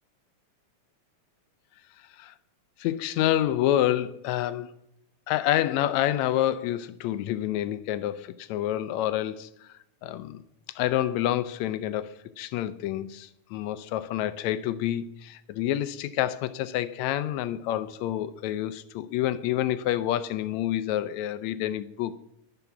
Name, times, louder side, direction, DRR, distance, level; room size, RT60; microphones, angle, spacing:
voice 1, 2.8-4.7 5.3-9.5 10.0-10.4 10.8-22.2, left 12 dB, 80° left, 1.8 m, -28 dB
10.5 x 10.0 x 5.8 m
omnidirectional pair, 3.3 m